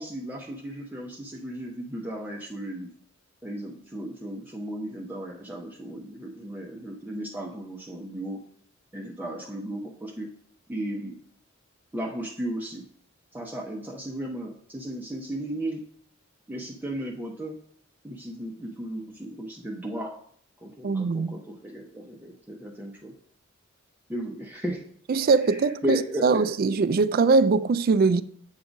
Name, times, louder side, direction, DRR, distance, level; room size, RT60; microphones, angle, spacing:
voice 1, 0.0-2.9 3.4-8.4 8.9-10.3 10.7-11.2 11.9-12.9 13.3-15.8 16.5-17.6 18.0-20.1 20.6-23.1 24.1-24.8 25.4-26.5, equal, 10° right, 0.6 m, -35 dB
voice 2, 20.8-21.3 25.1-28.2, right 4 dB, 45° right, 0.3 m, -22 dB
8.0 x 3.7 x 5.1 m
head